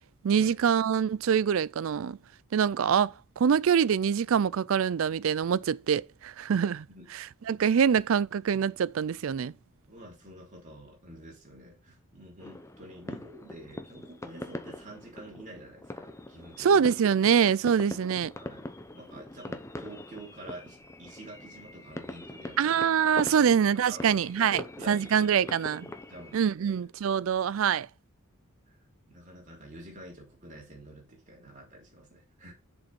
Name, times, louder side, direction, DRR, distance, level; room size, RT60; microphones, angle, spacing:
voice 1, 0.2-2.2 2.5-6.9 7.1-9.5 16.6-18.3 22.6-25.9 26.3-27.9, right 7 dB, 65° right, 0.4 m, -25 dB
voice 2, 9.8-16.9 18.4-22.7 23.4-23.6 23.8-25.5 26.1-26.8 28.7-28.8 29.1-32.5, right 1 dB, 35° right, 3.1 m, -48 dB
sound 1, 12.4-26.4, left 1 dB, 15° left, 0.7 m, -43 dB
7.1 x 5.3 x 5.3 m
head